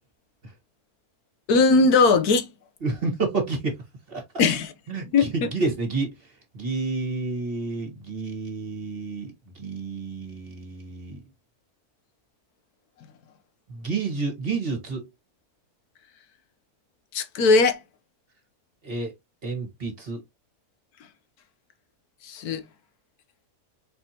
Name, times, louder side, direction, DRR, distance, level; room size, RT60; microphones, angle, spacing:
voice 1, 1.5-2.5 4.4-4.7 5.1-5.5 17.1-17.8 22.2-22.6, left 3 dB, 80° left, 1.3 m, -19 dB
voice 2, 2.8-3.8 4.1-4.2 4.9-6.2 6.5-11.2 13.7-15.1 18.8-19.1 19.4-20.2, right 3 dB, 40° right, 1.6 m, -29 dB
4.4 x 4.1 x 2.8 m
omnidirectional pair, 1.6 m